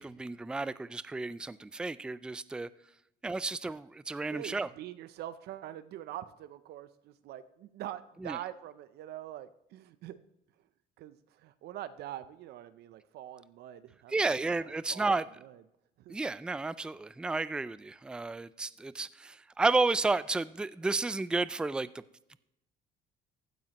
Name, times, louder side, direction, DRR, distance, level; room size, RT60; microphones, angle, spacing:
voice 1, 0.0-2.7 3.2-4.7 8.2-8.4 14.1-15.2 16.1-21.9, right 3 dB, 5° right, 16 dB, 0.3 m, -32 dB
voice 2, 4.3-10.2 11.0-15.1 15.4-15.6 16.0-16.2, right 12 dB, 75° right, 13 dB, 0.6 m, -44 dB
15.5 x 9.2 x 3.0 m, 0.83 s
cardioid pair, 110°, 17 cm